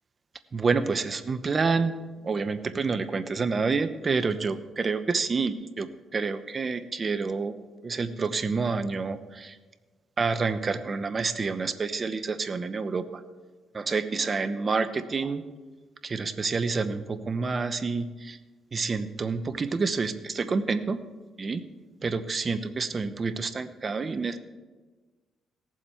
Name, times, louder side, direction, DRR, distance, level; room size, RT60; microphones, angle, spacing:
voice 1, 0.5-1.9 2.2-7.6 7.8-9.6 10.2-13.2 13.7-15.4 16.0-18.4 18.7-21.0 21.4-21.6 22.0-24.4, right 4 dB, 35° right, 11 dB, 0.8 m, -28 dB
17.5 x 7.4 x 4.4 m, 1.3 s
cardioid pair, 90°, 0 cm